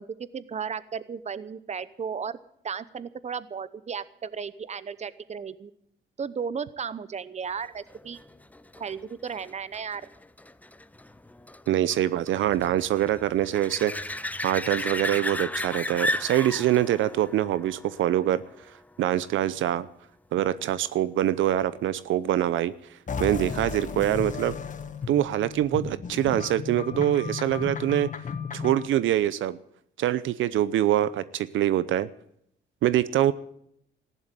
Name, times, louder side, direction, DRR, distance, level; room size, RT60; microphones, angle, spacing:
voice 1, 0.0-2.4 2.6-5.7 6.2-8.2 8.8-10.0, right 6 dB, 35° right, 16 dB, 0.9 m, -34 dB
sound 1, 7.9-19.2 24.8-24.9, left 2 dB, 10° left, 0.7 m, -35 dB
voice 2, 11.7-14.1 14.4-18.4 19.0-19.9 20.3-22.7 23.2-24.6 25.1-28.1 28.5-29.6 30.0-32.1 32.8-33.3, right 12 dB, 75° right, 16 dB, 0.7 m, -24 dB
sound 2, 23.1-28.9, left 6 dB, 40° left, 1.5 m, -34 dB
14.5 x 11.0 x 8.2 m, 0.70 s
cardioid pair, 90°, 20 cm